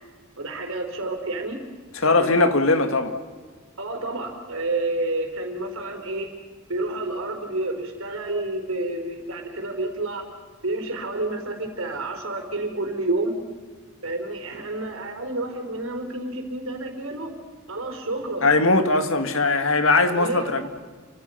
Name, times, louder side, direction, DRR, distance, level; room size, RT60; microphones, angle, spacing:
voice 1, 0.4-1.6 2.1-2.4 3.8-6.3 6.7-10.3 10.6-13.4 14.0-17.3 17.7-18.5 20.1-20.7, right 2 dB, 70° right, 4.5 m, -29 dB
voice 2, 2.0-3.1 18.4-20.7, left 3 dB, 65° left, 2.1 m, -20 dB
29.5 x 25.0 x 5.8 m
head